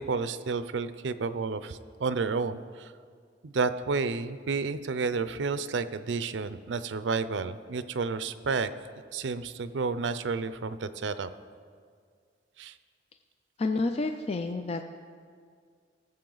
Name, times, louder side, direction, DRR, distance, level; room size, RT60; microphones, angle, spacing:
voice 1, 0.0-2.9 3.4-8.7 9.1-11.3 12.6-12.8, right 4 dB, 75° right, 13 dB, 0.5 m, -31 dB
voice 2, 13.6-14.8, left 3 dB, 35° left, 6 dB, 0.4 m, -29 dB
18.0 x 7.4 x 3.9 m, 2.1 s
head